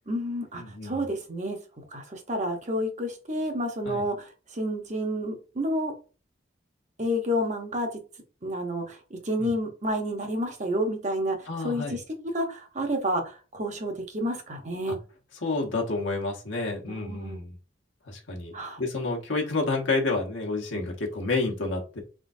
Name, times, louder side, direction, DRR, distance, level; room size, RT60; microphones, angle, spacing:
voice 1, 0.1-1.6 1.9-5.9 7.0-7.9 8.4-12.0 12.3-15.0 16.9-17.4 18.5-18.8, equal, 35° right, 4 dB, 1.0 m, -30 dB
voice 2, 0.6-1.0 3.8-4.1 9.4-9.5 11.5-12.0 14.9-15.0 15.4-17.6 18.1-22.0, left 3 dB, 75° left, 1 dB, 1.2 m, -29 dB
4.5 x 3.7 x 2.6 m, 0.35 s
head